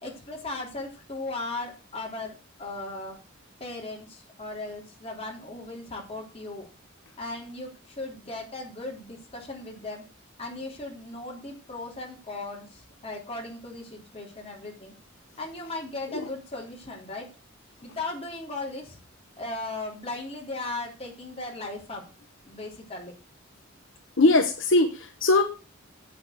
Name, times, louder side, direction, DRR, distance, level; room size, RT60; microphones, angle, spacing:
voice 1, 0.0-3.2 3.6-6.7 7.2-10.0 10.4-15.0 15.4-17.3 17.8-19.0 19.4-22.0 22.4-23.1, left 2 dB, 30° left, -1 dB, 3.5 m, -37 dB
voice 2, 24.2-25.4, left 2 dB, 65° left, 5 dB, 1.1 m, -20 dB
8.4 x 6.7 x 6.5 m, 0.33 s
head